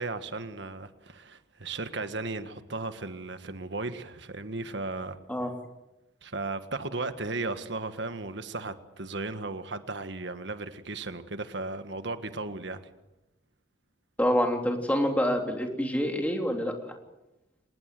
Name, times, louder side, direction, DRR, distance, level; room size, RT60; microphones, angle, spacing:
voice 1, 0.0-5.2 6.2-12.9, right 3 dB, 65° right, 10 dB, 1.6 m, -35 dB
voice 2, 14.2-16.7, equal, 5° left, 3 dB, 3.2 m, -26 dB
25.5 x 20.5 x 7.8 m, 0.97 s
head